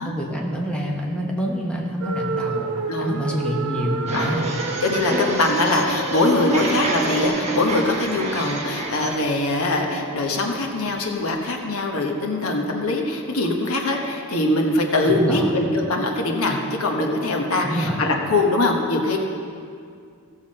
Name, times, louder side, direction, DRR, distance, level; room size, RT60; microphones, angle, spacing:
voice 1, 0.0-2.7 3.0-4.6 15.1-15.6 17.6-18.0, equal, 5° left, -3 dB, 1.1 m, -26 dB
sound 1, 2.0-7.3, right 3 dB, 65° right, 0.9 m, -29 dB
voice 2, 2.9-3.2 4.1-4.4 4.8-19.2, left 2 dB, 70° left, 1 dB, 1.2 m, -22 dB
sound 2, 4.1-9.2, right 2 dB, 30° right, 1.2 m, -29 dB
16.0 x 7.2 x 4.3 m, 2.3 s
head